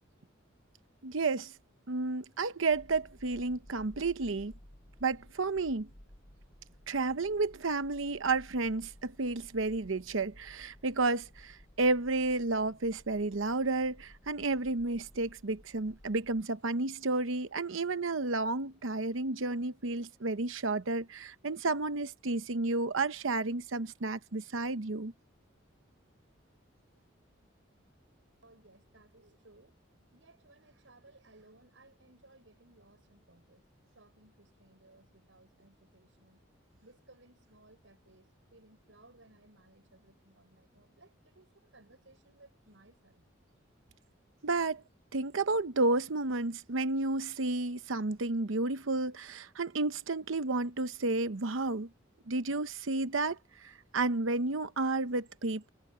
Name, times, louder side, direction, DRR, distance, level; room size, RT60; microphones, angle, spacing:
voice 1, 1.0-1.5 1.9-4.5 5.0-5.9 6.9-25.1 44.4-44.8 45.1-51.9 52.3-55.7, right 3 dB, 90° right, 0.9 m, -31 dB
sound 1, 2.7-16.4, equal, 45° left, 4.3 m, -57 dB
voice 2, 28.4-29.8 30.1-33.6 33.9-36.5 36.8-43.3, right 2 dB, 75° right, 7.2 m, -61 dB
head